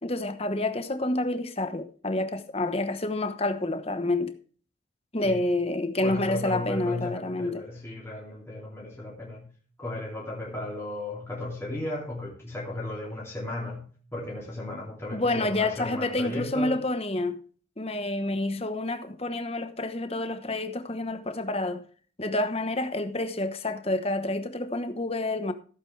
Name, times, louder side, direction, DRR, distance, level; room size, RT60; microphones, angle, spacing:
voice 1, 0.0-4.3 5.1-7.6 15.1-17.4 17.8-21.8 22.2-25.5, left 2 dB, 30° left, 1.1 m, -28 dB
voice 2, 6.0-9.5 9.8-16.8, left 1 dB, 15° left, 2.7 m, -35 dB
15.0 x 8.4 x 3.3 m
head